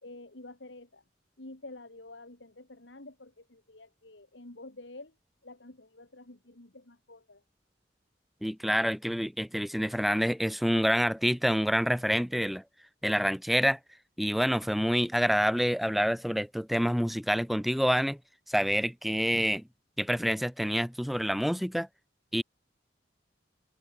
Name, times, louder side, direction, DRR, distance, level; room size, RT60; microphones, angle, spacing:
voice 1, 0.0-1.0 1.4-5.1 5.4-7.4, left 2 dB, 80° left, 2.6 m, -49 dB
voice 2, 8.4-12.6 13.0-13.8 14.2-18.2 18.5-19.6 20.0-21.9 22.3-22.4, equal, ahead, 0.6 m, -27 dB
head